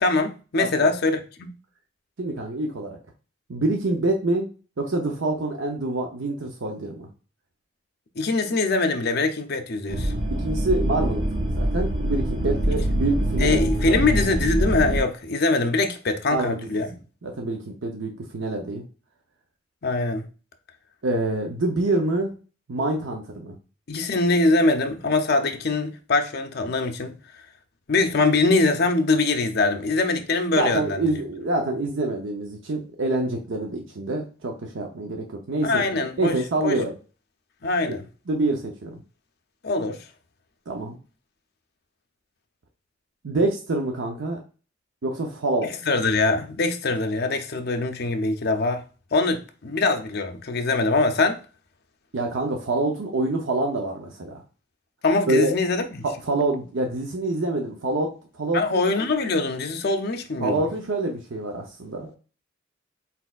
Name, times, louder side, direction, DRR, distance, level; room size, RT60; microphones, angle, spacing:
voice 1, 0.0-1.5 8.2-10.1 12.7-12.8 13.4-16.9 19.8-20.2 23.9-27.1 27.9-31.1 35.6-36.3 36.6-36.8 37.6-38.0 39.6-40.0 45.9-48.8 49.1-51.4 55.0-55.8 58.5-60.6, left 3 dB, 55° left, 0.6 m, -23 dB
voice 2, 0.6-0.9 2.2-3.0 3.5-4.5 4.8-7.1 10.3-14.2 16.3-16.7 17.2-18.8 21.0-22.3 22.7-23.6 30.5-35.8 36.2-36.9 37.9-38.0 38.3-39.0 40.7-41.0 43.2-44.4 45.0-45.8 52.1-54.4 55.3-55.5 56.0-58.8 60.4-62.2, right 2 dB, 75° right, 0.7 m, -26 dB
sound 1, 9.9-15.0, right 1 dB, 40° right, 1.4 m, -24 dB
4.2 x 4.1 x 2.3 m
head